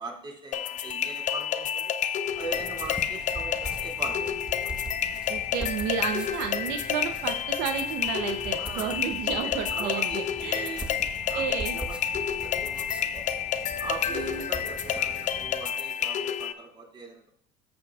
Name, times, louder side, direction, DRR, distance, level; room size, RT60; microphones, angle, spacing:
voice 1, 0.0-1.9 2.3-4.3 8.6-9.0 9.3-11.4 11.7-13.2 13.8-17.3, right 4 dB, 25° right, -1 dB, 2.5 m, -40 dB
sound 1, 0.5-16.5, left 9 dB, 45° left, 0.6 m, -30 dB
sound 2, 2.3-15.7, right 2 dB, 5° right, 1.0 m, -42 dB
voice 2, 5.3-10.8 11.3-11.8 14.1-14.4, right 7 dB, 70° right, 5 dB, 0.8 m, -32 dB
14.0 x 7.0 x 2.4 m, 0.69 s
supercardioid pair, 100°, 18 cm